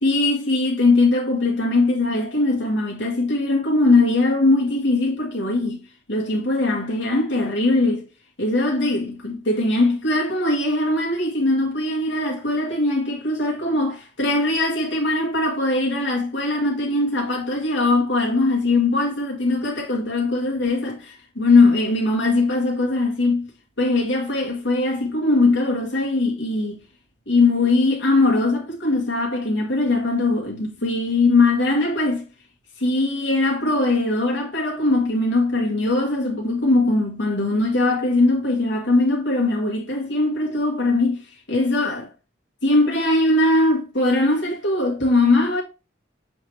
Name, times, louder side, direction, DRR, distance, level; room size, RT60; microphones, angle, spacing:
voice 1, 0.0-5.8 6.1-8.1 8.4-23.5 23.8-26.8 27.3-32.2 32.8-42.1 42.6-45.6, left 2 dB, 70° left, 1.6 m, -20 dB
6.9 x 3.3 x 4.6 m
head